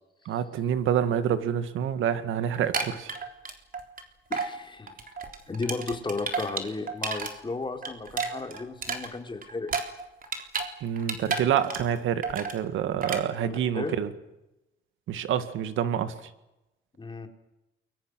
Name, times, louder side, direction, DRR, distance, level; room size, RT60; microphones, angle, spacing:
voice 1, 0.3-3.2 10.8-14.1 15.1-16.1, right 9 dB, 80° right, 11 dB, 2.0 m, -27 dB
sound 1, 2.5-4.0 4.3-4.5 4.9-7.3 7.6-10.7 11.0-12.0 12.2-12.6 13.0-13.2, right 5 dB, 45° right, 3.8 m, -32 dB
voice 2, 4.3-5.0 5.5-9.7 13.5-13.9 17.0-17.3, left 3 dB, 25° left, 4 dB, 4.0 m, -34 dB
29.5 x 23.0 x 6.4 m, 0.95 s
cardioid pair, 90°, 20 cm